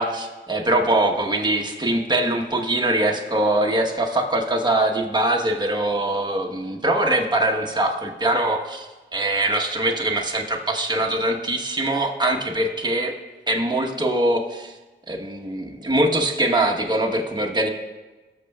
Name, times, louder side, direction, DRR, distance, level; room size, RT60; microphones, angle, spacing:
voice 1, 0.0-13.1 13.5-14.7 15.1-17.7, right 1 dB, 20° right, 1 dB, 1.2 m, -22 dB
19.5 x 6.5 x 2.4 m, 1.2 s
cardioid pair, 65°, 21 cm